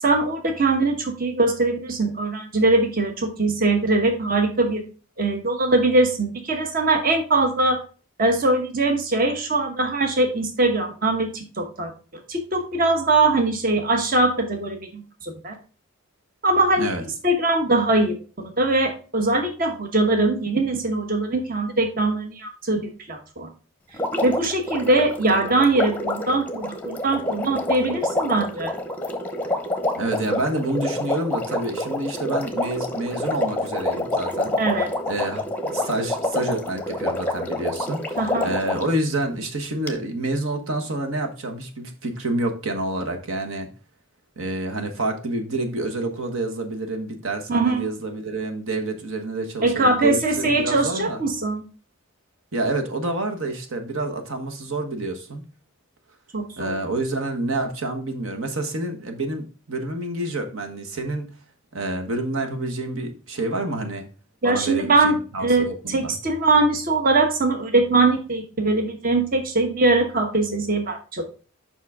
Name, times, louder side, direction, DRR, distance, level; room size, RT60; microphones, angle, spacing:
voice 1, 0.0-4.8 5.2-7.8 8.2-11.9 12.3-15.5 16.4-16.9 17.2-23.5 24.2-28.7 34.6-34.9 38.2-38.5 47.5-47.9 49.6-51.6 56.3-56.8 64.4-65.2 65.4-71.2, right 2 dB, 40° right, 5 dB, 1.1 m, -21 dB
Water, 23.9-39.0 39.9-40.0, left 1 dB, 10° left, 0.8 m, -27 dB
voice 2, 29.9-34.6 35.1-43.7 44.4-51.2 52.5-55.4 56.6-61.3 61.7-64.1 64.4-66.1, right 2 dB, 70° right, 5 dB, 1.2 m, -28 dB
7.4 x 5.5 x 3.5 m, 0.37 s
head